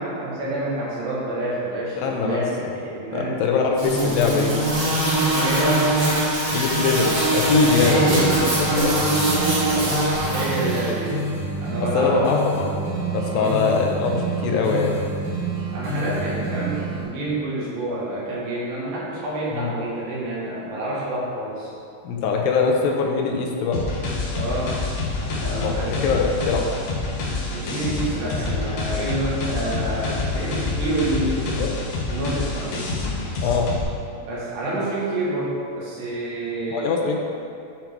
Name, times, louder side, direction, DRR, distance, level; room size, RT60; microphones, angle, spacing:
voice 1, 0.0-3.4 5.2-5.9 6.5-6.6 7.5-9.7 10.3-11.2 11.6-12.3 13.3-13.7 15.7-21.7 24.3-24.8 25.4-26.0 27.5-31.4 32.1-32.8 34.2-37.0, right 1 dB, 75° right, -7 dB, 3.6 m, -28 dB
voice 2, 2.0-2.8 3.1-4.6 6.5-8.1 8.6-8.9 11.8-12.8 13.1-15.1 19.5-19.7 22.0-23.9 25.5-26.7 31.6-31.7 33.4-33.7 36.7-37.2, left 5 dB, 80° left, 0 dB, 2.5 m, -22 dB
sound 1, 3.8-10.9, right 1 dB, 35° right, 1.7 m, -22 dB
sound 2, 7.5-17.0, right 2 dB, 60° right, 1.1 m, -28 dB
sound 3, 23.7-33.8, left 3 dB, 65° left, 2.2 m, -27 dB
10.5 x 3.7 x 4.5 m, 2.6 s
omnidirectional pair, 4.2 m